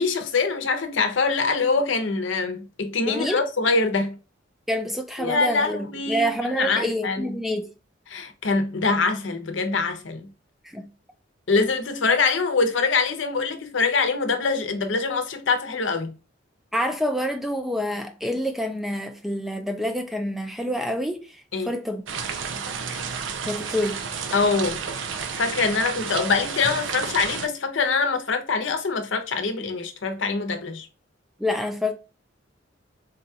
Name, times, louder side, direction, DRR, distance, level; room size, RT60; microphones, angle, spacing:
voice 1, 0.0-4.2 5.2-6.3 6.6-7.3 8.1-10.3 11.5-16.1 21.5-21.7 24.3-24.8 25.4-30.9, left 4 dB, 75° left, 0.7 m, -24 dB
voice 2, 3.1-3.4 4.7-7.7 10.6-10.9 16.7-22.0 23.4-24.0 31.4-31.9, equal, ahead, 0.4 m, -27 dB
sound 1, 22.1-27.5, right 6 dB, 75° right, 0.5 m, -31 dB
3.9 x 2.3 x 2.7 m
head